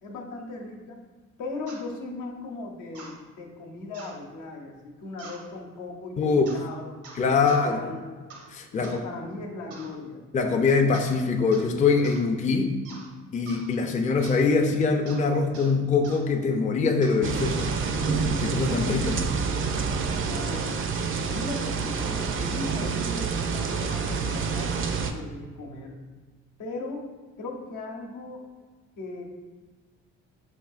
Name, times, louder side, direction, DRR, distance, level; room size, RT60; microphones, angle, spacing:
voice 1, 0.0-1.0 1.4-7.0 7.4-8.1 8.7-10.2 20.1-20.7 21.3-24.7 25.1-26.0 26.6-27.0 27.4-28.5 29.0-29.2, left 3 dB, 80° left, 0 dB, 0.9 m, -38 dB
sound 1, 1.7-1.8 2.9-3.2 3.9-4.2 5.2-5.4 6.4-6.7 7.0-7.7 8.3-8.5 8.8-9.0 9.7-10.0 10.9-11.2 11.5-11.7 12.0-12.2 12.8-13.1 13.5-13.7 14.2-14.4 15.1-15.2 15.5-15.7 16.0-16.2 17.0-17.2 17.6-17.8, right 3 dB, 80° right, 0.8 m, -45 dB
voice 2, 6.2-6.5 7.2-7.9 8.5-9.0 10.3-12.7 13.3-17.7 18.4-19.2, left 4 dB, 25° left, 3 dB, 0.4 m, -23 dB
sound 2, 17.2-25.1, right 5 dB, 45° right, 0.4 m, -28 dB
6.5 x 2.7 x 2.4 m, 1.4 s
cardioid pair, 90°, 30 cm